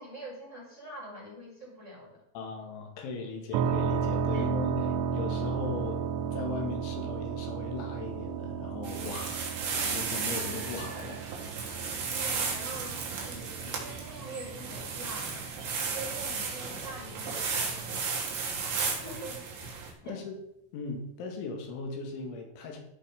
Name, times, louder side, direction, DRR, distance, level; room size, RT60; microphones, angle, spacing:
voice 1, 0.0-2.2 4.3-4.4 12.1-15.5 15.9-20.2, right 1 dB, 10° left, -4 dB, 3.4 m, -45 dB
voice 2, 2.4-9.5 9.7-11.2 20.0-20.4 20.7-22.8, left 4 dB, 80° left, 3 dB, 4.1 m, -38 dB
sound 1, 3.5-17.2, right 6 dB, 85° right, 3.1 m, -34 dB
sound 2, 8.8-19.9, right 5 dB, 55° right, 3.3 m, -34 dB
14.0 x 5.3 x 5.1 m, 0.80 s
omnidirectional pair, 5.5 m